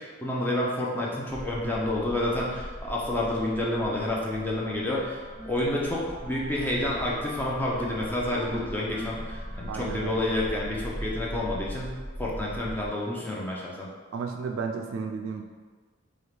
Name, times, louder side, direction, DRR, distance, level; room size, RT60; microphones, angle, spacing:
voice 1, 0.0-5.2 5.5-13.9, left 1 dB, 10° left, -5 dB, 0.5 m, -29 dB
sound 1, 2.2-12.9, equal, 80° left, 1.3 m, -40 dB
Wind instrument woodwind instrument, 4.8-10.5, equal, 50° left, 1.5 m, -45 dB
voice 2, 9.7-10.2 14.1-15.4, right 5 dB, 75° right, 3 dB, 0.3 m, -33 dB
4.4 x 2.4 x 3.3 m, 1.4 s
head